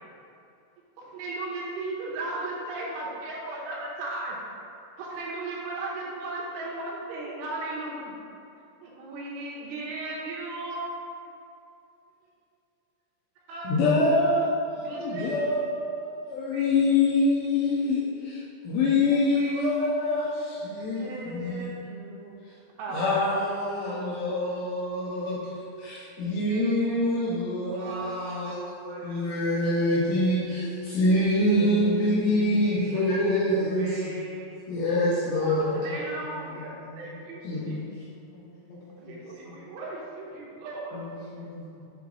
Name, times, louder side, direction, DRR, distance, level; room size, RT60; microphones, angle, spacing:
voice 1, 1.0-4.4 5.0-8.2 8.8-10.9 13.5-13.7 14.8-15.4 16.5-17.0 19.1-19.6 20.2-20.3 21.0-22.4 22.8-23.4 23.9-24.5 26.2-27.2 27.5-30.1 31.3-31.8 32.4-34.6 35.3-37.4 37.7-37.8 39.0-41.0, right 2 dB, 75° right, -4 dB, 3.0 m, -37 dB
voice 2, 13.6-21.7 22.9-34.0 34.7-35.8 37.4-37.7, left 2 dB, 85° left, -8 dB, 2.5 m, -25 dB
voice 3, 31.6-33.1 33.5-34.3 35.3-36.6 37.1-38.4 38.7-39.5 40.9-41.8, left 2 dB, 70° left, -10 dB, 2.5 m, -39 dB
7.7 x 3.1 x 5.3 m, 2.6 s
omnidirectional pair, 5.9 m